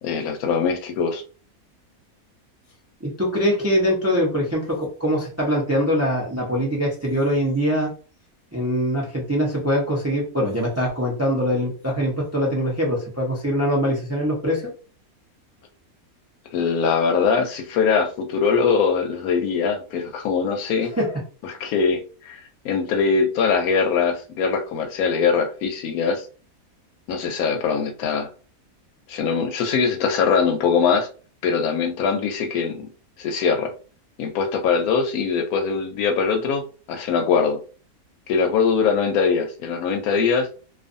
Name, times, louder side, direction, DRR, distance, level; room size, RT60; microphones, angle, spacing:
voice 1, 0.0-1.2 16.5-20.9 21.4-26.3 27.1-28.3 29.1-31.1 31.4-32.9 33.2-33.7 34.2-37.6 38.3-40.5, left 5 dB, 80° left, 6 dB, 1.0 m, -22 dB
voice 2, 3.0-7.9 8.5-14.6 20.9-21.1, equal, 20° right, -3 dB, 0.4 m, -23 dB
2.5 x 2.4 x 2.5 m, 0.39 s
omnidirectional pair, 1.5 m